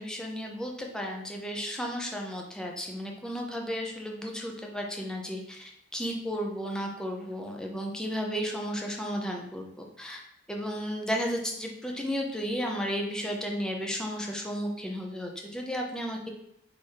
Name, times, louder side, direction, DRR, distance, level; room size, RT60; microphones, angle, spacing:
voice 1, 0.0-9.7 10.0-10.2 10.5-16.3, equal, 5° left, 0 dB, 0.6 m, -33 dB
3.5 x 3.4 x 4.1 m, 0.79 s
head